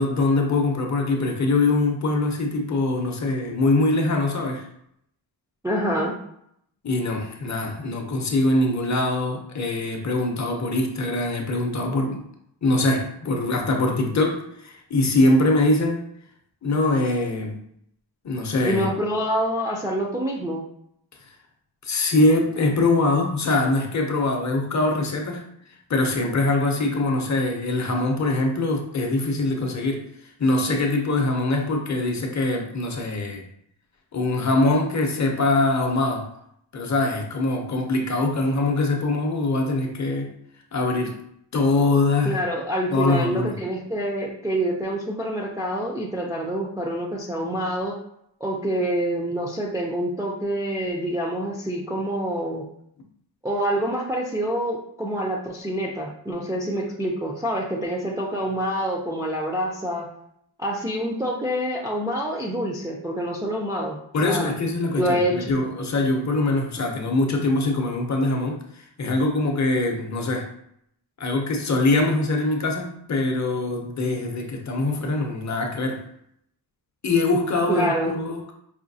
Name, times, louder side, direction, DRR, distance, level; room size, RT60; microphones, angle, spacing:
voice 1, 0.0-4.7 6.8-12.2 12.6-16.0 16.6-17.6 18.2-18.9 21.8-25.4 25.9-33.4 34.1-36.3 36.7-40.3 40.7-41.2 41.5-42.4 42.9-43.6 64.1-70.5 71.2-76.0 77.0-78.5, left 2 dB, 40° left, 2 dB, 0.6 m, -23 dB
voice 2, 5.6-6.1 18.6-20.6 42.2-47.9 48.4-52.6 53.4-60.1 60.6-64.0 64.2-64.5 64.9-65.5 77.7-78.2, equal, 10° right, -2 dB, 0.3 m, -26 dB
5.0 x 2.6 x 2.6 m, 0.72 s
wide cardioid pair, 165°, 45 cm